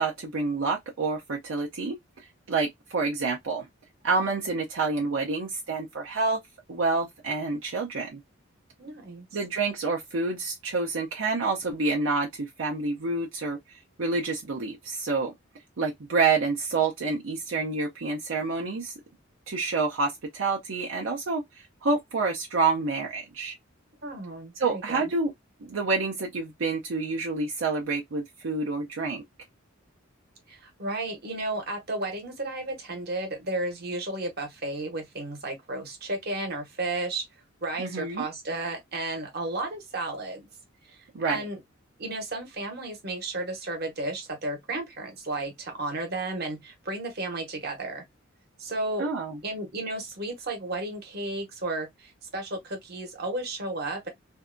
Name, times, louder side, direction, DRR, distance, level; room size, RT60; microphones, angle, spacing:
voice 1, 0.0-1.9 2.5-3.7 4.0-6.4 6.7-8.2 9.3-15.3 15.8-18.9 19.5-23.6 24.6-25.3 25.7-29.2 37.8-38.3 41.1-41.4 49.0-49.4, right 3 dB, 75° right, 0.6 m, -28 dB
voice 2, 8.8-9.3 24.0-25.0 30.5-37.2 37.6-40.5 40.8-41.6 42.0-48.0 48.6-49.1 49.4-54.1, right 2 dB, 50° right, 1.0 m, -33 dB
2.6 x 2.2 x 2.5 m
head